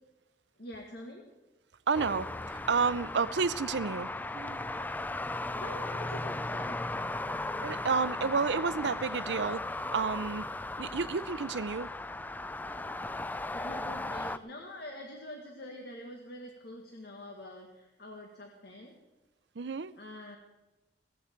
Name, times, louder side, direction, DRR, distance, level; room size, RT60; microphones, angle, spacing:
voice 1, 0.6-1.3 5.6-6.9 13.5-18.9 20.0-20.4, left 1 dB, 65° left, 1.7 m, -45 dB
sound 1, 1.9-14.4, left 2 dB, 10° left, 0.4 m, -37 dB
voice 2, 1.9-4.6 7.6-9.7 9.9-10.4 10.8-11.9 19.6-19.9, right 5 dB, 75° right, 0.6 m, -31 dB
17.5 x 14.0 x 4.5 m
head